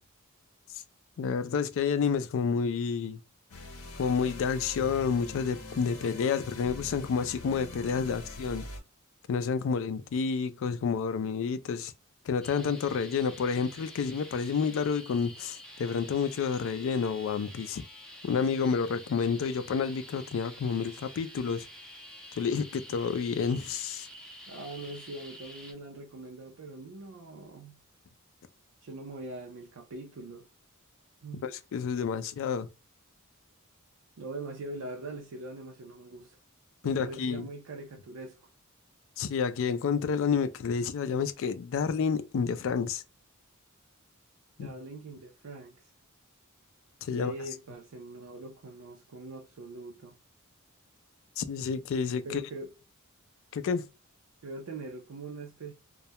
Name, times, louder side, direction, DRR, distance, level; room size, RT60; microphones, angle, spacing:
voice 1, 1.2-3.2 4.0-8.7 9.3-11.9 12.3-17.8 18.2-21.7 22.4-24.1 31.4-32.7 36.8-37.5 39.2-43.0 44.6-44.7 47.0-47.3 51.4-52.4 53.5-53.8, left 6 dB, 60° left, 0.3 m, -29 dB
sound 1, 3.5-8.8, left 2 dB, 85° left, 0.7 m, -43 dB
sound 2, 12.4-25.7, equal, 5° left, 0.5 m, -48 dB
voice 2, 24.5-27.8 28.8-30.5 31.2-31.5 34.2-36.4 36.8-38.5 44.6-45.9 47.1-50.1 52.2-52.7 54.4-55.7, right 2 dB, 75° right, 0.5 m, -42 dB
2.3 x 2.1 x 2.7 m
head